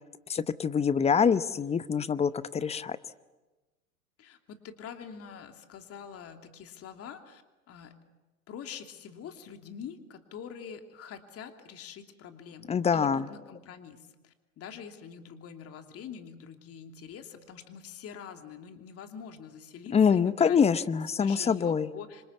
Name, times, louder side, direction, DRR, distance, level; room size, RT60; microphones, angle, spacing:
voice 1, 0.3-3.0 12.7-13.3 19.9-21.9, left 6 dB, 15° left, 15 dB, 0.8 m, -25 dB
voice 2, 4.2-7.4 7.7-7.9 8.5-20.6 21.1-22.2, left 7 dB, 30° left, 6 dB, 2.9 m, -45 dB
26.5 x 26.0 x 8.3 m, 1.1 s
hypercardioid pair, 100°, 44 cm